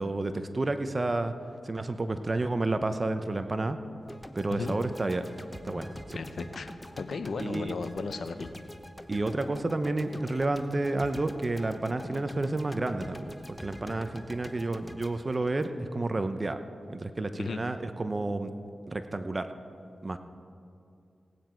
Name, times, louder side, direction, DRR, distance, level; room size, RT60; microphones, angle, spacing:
voice 1, 0.0-1.3 1.6-3.8 4.3-5.3 5.6-6.2 7.4-7.7 9.1-16.6 16.9-18.5 18.9-19.5 20.0-20.2, right 2 dB, 40° right, 9 dB, 0.8 m, -30 dB
sound 1, 4.1-16.3, equal, 15° left, 0.8 m, -45 dB
voice 2, 6.1-8.5 17.4-17.6, left 4 dB, 75° left, 10 dB, 0.7 m, -35 dB
18.0 x 9.4 x 4.5 m, 2.5 s
cardioid pair, 55°, 0 cm